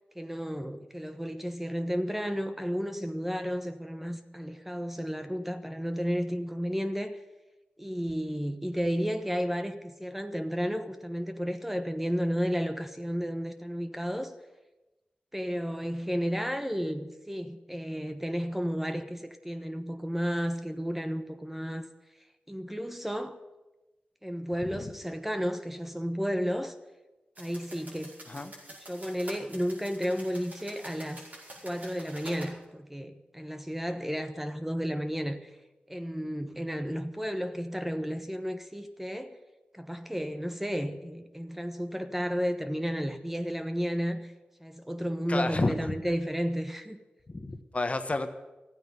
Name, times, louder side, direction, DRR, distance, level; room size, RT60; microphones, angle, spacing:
voice 1, 0.1-7.2 7.8-14.3 15.3-21.9 22.5-23.4 24.2-26.7 27.4-28.4 28.9-31.2 31.6-35.5 35.9-39.4 39.7-44.3 44.6-47.0, equal, 5° right, 1.1 m, -32 dB
sound 1, 27.3-32.5, right 1 dB, 50° right, 5.1 m, -47 dB
voice 2, 45.3-45.9 47.3-48.3, left 2 dB, 40° left, 1.3 m, -30 dB
13.5 x 9.2 x 9.6 m
cardioid pair, 55°, 3 cm